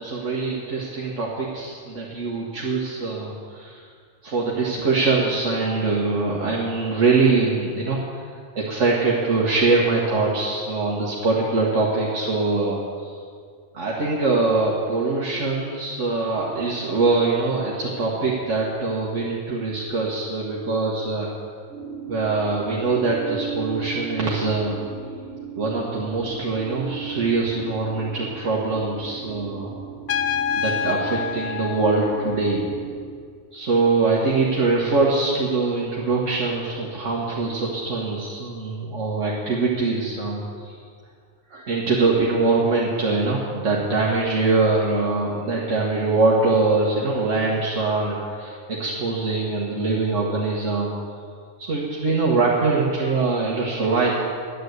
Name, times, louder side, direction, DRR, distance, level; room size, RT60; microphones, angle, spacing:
voice 1, 0.0-3.8 4.2-8.2 8.6-13.1 13.7-21.3 22.1-24.9 25.6-29.7 30.6-32.6 33.5-40.8 41.5-50.9 51.6-54.1, right 3 dB, 70° right, -4 dB, 1.8 m, -23 dB
sound 1, 21.7-33.2, right 6 dB, ahead, 2.2 m, -36 dB
Trumpet, 30.1-32.7, left 7 dB, 50° left, 0.5 m, -27 dB
10.5 x 10.5 x 8.0 m, 2.1 s
omnidirectional pair, 1.3 m